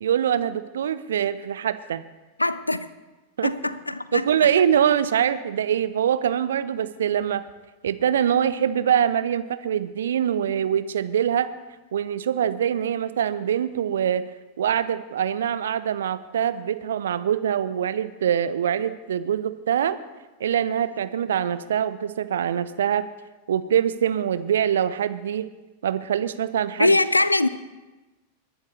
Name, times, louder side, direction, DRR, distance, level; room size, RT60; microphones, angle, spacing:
voice 1, 0.0-2.0 3.4-3.5 4.1-7.4 7.8-11.5 11.9-14.3 14.6-20.0 20.4-23.1 23.5-25.5 25.8-26.9, right 9 dB, 65° right, 0.6 m, -24 dB
voice 2, 2.4-2.9 3.4-4.3 26.8-27.5, left 2 dB, 85° left, 0.5 m, -22 dB
21.0 x 11.0 x 3.2 m
figure-of-eight pair, 90°, 0 cm